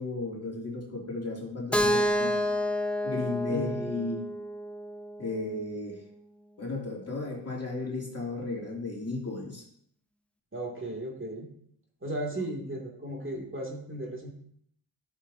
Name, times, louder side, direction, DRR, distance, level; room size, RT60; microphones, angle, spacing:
voice 1, 0.0-2.4 3.0-4.4 5.2-6.0 6.6-9.6, left 3 dB, 30° left, -2 dB, 2.6 m, -34 dB
Keyboard (musical), 1.7-5.6, equal, 5° left, 0.6 m, -29 dB
voice 2, 10.5-11.5 12.0-14.3, right 1 dB, 25° right, -2 dB, 2.3 m, -35 dB
9.9 x 6.8 x 2.7 m, 0.66 s
supercardioid pair, 45°, 49 cm